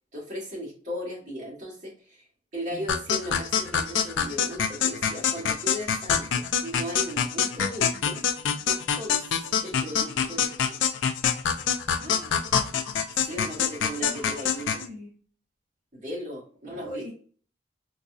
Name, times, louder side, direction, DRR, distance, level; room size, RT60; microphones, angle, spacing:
voice 1, 0.1-2.2 2.5-8.2 8.6-10.5 13.2-14.8 15.9-17.1, equal, 40° right, -5 dB, 1.5 m, -37 dB
sound 1, 2.9-14.9, left 7 dB, 90° left, 0.4 m, -26 dB
voice 2, 12.0-12.4 14.0-15.1 16.7-17.1, equal, 20° right, -8 dB, 0.8 m, -41 dB
3.9 x 2.6 x 2.3 m, 0.41 s
head